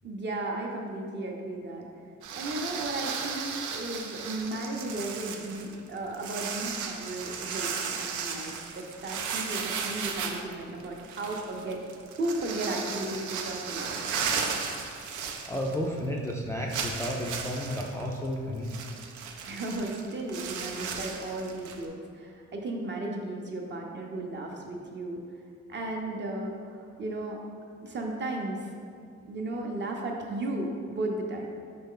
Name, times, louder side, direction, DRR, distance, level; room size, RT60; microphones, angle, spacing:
voice 1, 0.0-1.9 2.3-11.8 12.2-14.0 19.4-25.2 25.7-27.4 27.8-28.7 29.3-31.5, right 2 dB, 35° right, 1 dB, 0.7 m, -35 dB
sound 1, 2.2-16.0 16.3-16.4 16.7-21.9, right 6 dB, 80° right, 0.5 m, -35 dB
voice 2, 15.5-18.8, equal, 10° left, -3 dB, 0.4 m, -32 dB
4.2 x 3.2 x 3.8 m, 2.2 s
cardioid pair, 90°, 30 cm